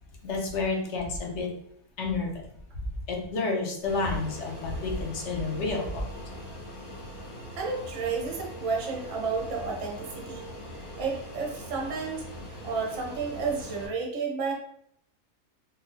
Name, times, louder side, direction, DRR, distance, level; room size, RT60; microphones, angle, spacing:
voice 1, 0.2-1.5 2.0-2.4 3.1-6.1, left 3 dB, 60° left, 0 dB, 0.9 m, -30 dB
Fixed-wing aircraft airplane, 3.9-13.9, equal, 80° left, 2.0 m, -42 dB
voice 2, 7.6-10.5 11.0-12.2 12.6-14.5, right 4 dB, 60° right, -1 dB, 1.1 m, -31 dB
3.8 x 2.3 x 2.7 m, 0.69 s
omnidirectional pair, 1.5 m